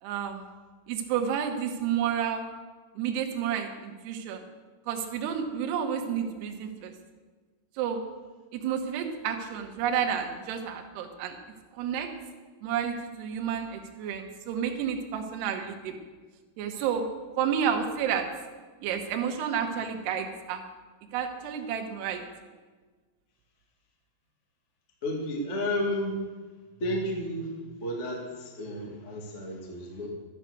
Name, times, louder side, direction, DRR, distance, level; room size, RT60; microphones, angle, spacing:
voice 1, 0.0-0.4 0.9-2.5 3.0-4.4 4.9-6.9 7.8-8.0 8.5-11.4 11.7-12.1 12.6-16.0 16.6-17.1 17.4-18.3 18.8-20.7 21.1-22.3, right 8 dB, 70° right, 4 dB, 2.8 m, -30 dB
voice 2, 25.0-26.1 26.8-27.5 27.8-30.1, left 1 dB, 85° left, 0 dB, 0.6 m, -32 dB
13.5 x 9.9 x 6.6 m, 1.4 s
omnidirectional pair, 6.0 m